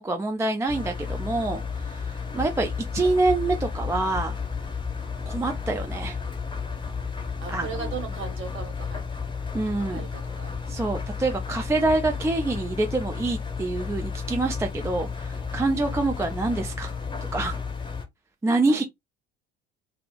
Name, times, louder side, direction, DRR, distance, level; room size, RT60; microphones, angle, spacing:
voice 1, 0.0-4.4 5.3-6.2 7.5-7.9 9.5-10.0 10.7-16.9 17.3-17.6 18.4-18.8, right 2 dB, 10° right, 0.4 m, -26 dB
Engine, 0.7-18.1, left 5 dB, 15° left, 0.8 m, -32 dB
voice 2, 7.4-9.0 9.8-10.6 18.6-18.8, right 6 dB, 35° right, 1.5 m, -38 dB
3.4 x 2.4 x 2.3 m
figure-of-eight pair, 60°, 34 cm